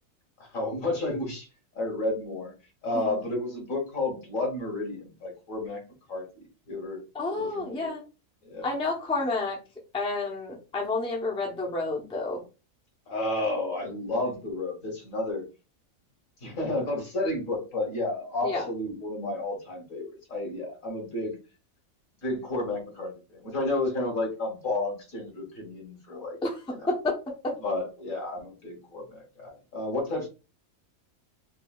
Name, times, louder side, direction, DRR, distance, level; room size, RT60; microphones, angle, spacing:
voice 1, 0.4-1.5 1.8-2.5 2.8-5.8 6.1-6.2 6.7-7.0 7.3-7.9 8.4-8.7 13.1-15.4 16.4-21.4 22.2-26.4 26.8-26.9 27.6-30.3, left 2 dB, 70° left, 0 dB, 1.8 m, -31 dB
voice 2, 7.1-8.0 8.6-9.6 9.9-12.4 18.4-18.6 26.4-26.6 26.9-27.5, left 3 dB, 5° left, -2 dB, 0.7 m, -30 dB
4.7 x 2.7 x 2.4 m, 0.31 s
omnidirectional pair, 1.4 m